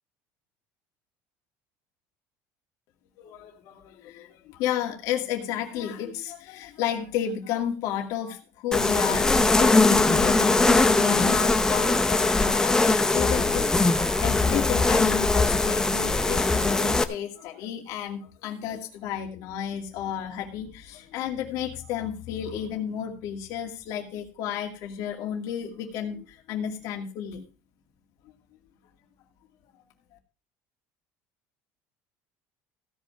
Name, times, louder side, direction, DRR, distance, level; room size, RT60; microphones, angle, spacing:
voice 1, 3.2-27.4 28.2-28.3, left 9 dB, 60° left, 2 dB, 2.4 m, -32 dB
sound 1, 8.7-17.0, left 3 dB, 10° left, 0.7 m, -21 dB
16.0 x 5.4 x 6.0 m, 0.36 s
cardioid pair, 155°, 7 cm